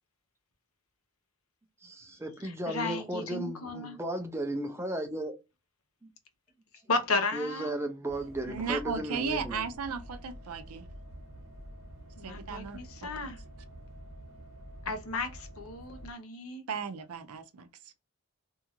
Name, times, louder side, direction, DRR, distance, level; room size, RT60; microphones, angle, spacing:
voice 1, 1.8-5.3 6.0-6.1 7.3-9.6, right 1 dB, 10° right, 0.4 m, -35 dB
voice 2, 2.4-4.0 6.9-7.8 12.2-13.4 14.8-16.6, left 3 dB, 75° left, 0.8 m, -34 dB
sound 1, 8.1-16.1, equal, 65° right, 0.9 m, -48 dB
voice 3, 8.5-10.9 12.2-13.3 16.7-17.9, right 6 dB, 90° right, 0.5 m, -36 dB
2.7 x 2.4 x 2.8 m
head